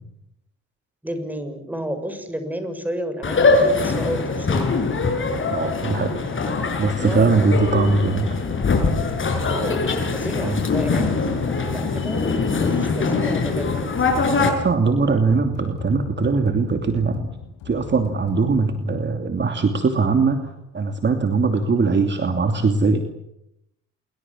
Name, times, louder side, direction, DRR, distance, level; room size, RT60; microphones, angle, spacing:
voice 1, 1.0-4.9 7.0-7.5 9.5-9.8 10.1-11.1 11.7-13.7, equal, 5° right, 8 dB, 6.7 m, -31 dB
Sonicsnaps-OM-FR-porte-magique, 3.2-14.5, left 4 dB, 40° left, 7.2 m, -22 dB
voice 2, 5.5-6.2 6.8-8.4 10.4-10.6 14.4-17.3 17.6-23.1, right 4 dB, 35° right, 6 dB, 2.8 m, -21 dB
sound 1, 8.5-18.6, left 7 dB, 85° left, 6.6 m, -39 dB
28.0 x 23.5 x 7.5 m, 0.80 s
cardioid pair, 90°, 30 cm